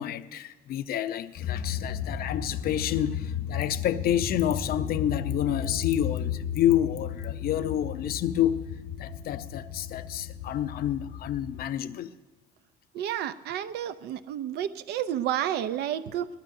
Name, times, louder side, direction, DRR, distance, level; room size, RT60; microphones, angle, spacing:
voice 1, 0.0-8.6 9.0-12.1, left 11 dB, 65° left, 0.7 m, -29 dB
sound 1, 1.4-11.6, left 8 dB, 85° left, 1.5 m, -34 dB
voice 2, 12.9-16.3, right 11 dB, 75° right, 0.6 m, -30 dB
21.5 x 19.0 x 2.7 m
cardioid pair, 110°, 17 cm